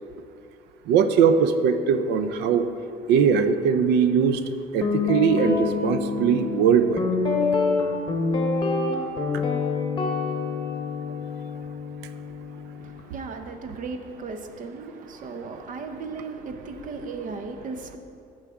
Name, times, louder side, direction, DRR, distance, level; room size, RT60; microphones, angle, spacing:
voice 1, 0.9-2.7 3.1-4.4 4.7-7.0, right 7 dB, 90° right, 10 dB, 0.5 m, -20 dB
Guitar, 4.8-13.0, left 4 dB, 30° left, 1.1 m, -26 dB
voice 2, 12.8-18.0, right 4 dB, 50° right, 6 dB, 0.8 m, -36 dB
14.0 x 4.8 x 3.6 m, 2.6 s
cardioid pair, 110°, 17 cm